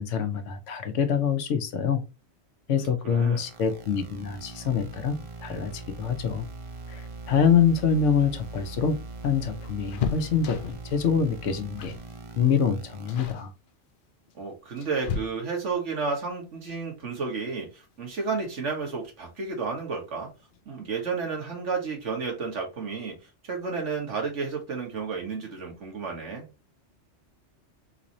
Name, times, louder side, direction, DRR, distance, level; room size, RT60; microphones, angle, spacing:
voice 1, 0.0-2.0 2.7-6.5 6.9-7.0 7.3-9.0 9.2-11.9 12.4-13.5, left 7 dB, 85° left, 1.0 m, -25 dB
voice 2, 2.7-3.4 14.3-20.3 20.7-23.1 23.4-26.5, right 4 dB, 80° right, 1.6 m, -32 dB
sound 1, 3.4-13.3, right 3 dB, 40° right, 0.4 m, -41 dB
sound 2, 8.3-11.0 11.8-12.1 12.4-12.7 13.1-13.5 14.3-15.8 17.5-17.6 18.0-18.1 19.3-19.7 20.0-20.1 20.4-20.6, left 7 dB, 60° left, 0.6 m, -35 dB
3.9 x 2.6 x 2.9 m
omnidirectional pair, 1.2 m